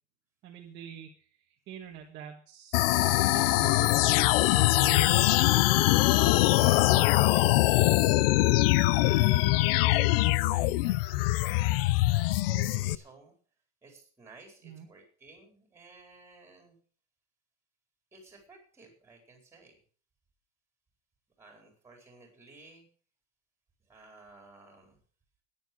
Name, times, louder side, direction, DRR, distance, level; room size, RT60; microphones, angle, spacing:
voice 1, 0.4-7.8 12.5-12.8 14.6-14.9, right 8 dB, 30° right, 1 dB, 1.5 m, -46 dB
sound 1, 2.7-13.0, left 18 dB, 50° left, 0.5 m, -23 dB
voice 2, 8.9-13.3 13.8-16.8 18.1-19.7 21.4-22.9 23.9-25.0, right 3 dB, 5° right, 2 dB, 4.4 m, -54 dB
13.5 x 10.5 x 6.1 m, 0.44 s
supercardioid pair, 180°, 37 cm